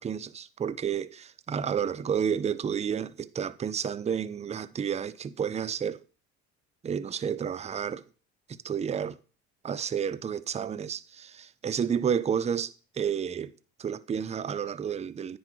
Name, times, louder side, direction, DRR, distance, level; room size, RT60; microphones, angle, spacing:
voice 1, 0.0-6.0 6.8-8.0 8.5-9.2 9.6-13.5 13.8-15.4, right 7 dB, 20° right, 0.4 m, -31 dB
9.7 x 4.7 x 4.5 m
supercardioid pair, 70°, 38 cm